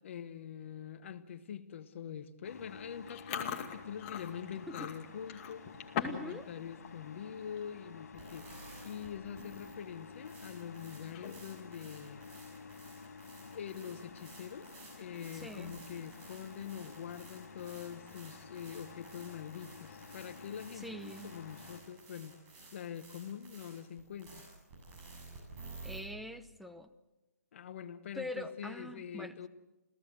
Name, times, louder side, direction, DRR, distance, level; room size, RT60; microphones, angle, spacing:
voice 1, 0.0-5.7 6.1-8.5 8.8-12.3 13.5-14.7 15.0-22.4 22.7-24.4 27.5-29.5, left 8 dB, 50° left, 11 dB, 1.1 m, -44 dB
sound 1, 2.4-21.8, left 5 dB, 75° left, 3.7 m, -52 dB
Chewing mastication, 3.1-6.3 6.6-7.0 7.4-7.6 8.4-8.5 8.7-9.0 9.4-9.5 11.0-11.6, left 8 dB, 30° left, 2.3 m, -40 dB
voice 2, 6.0-6.5 9.4-9.5 15.3-15.7 20.8-21.3 25.8-26.9 28.1-29.5, equal, ahead, 8 dB, 0.8 m, -44 dB
sound 2, 8.1-26.0, right 3 dB, 25° right, 7.3 m, -54 dB
29.0 x 16.5 x 7.8 m, 1.0 s
hypercardioid pair, 160°, 9 cm